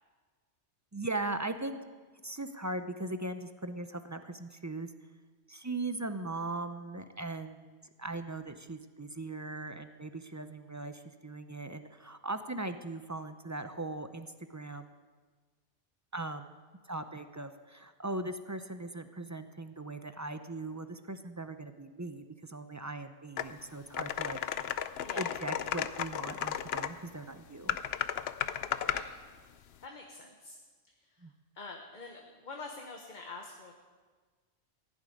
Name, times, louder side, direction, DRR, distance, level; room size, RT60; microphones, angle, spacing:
voice 1, 0.9-1.8 2.2-4.9 5.5-14.9 16.1-16.5 16.8-24.4 25.2-27.8 31.2-31.3, right 2 dB, 25° right, 9 dB, 0.4 m, -39 dB
sound 1, 23.4-23.5 23.9-26.9 27.7-29.1, left 9 dB, 65° left, 0.8 m, -34 dB
voice 2, 25.0-25.4 28.8-29.2 29.8-30.6 31.0-31.3 31.5-33.8, left 3 dB, 45° left, 2 dB, 1.2 m, -46 dB
16.0 x 7.3 x 9.9 m, 1.4 s
omnidirectional pair, 1.2 m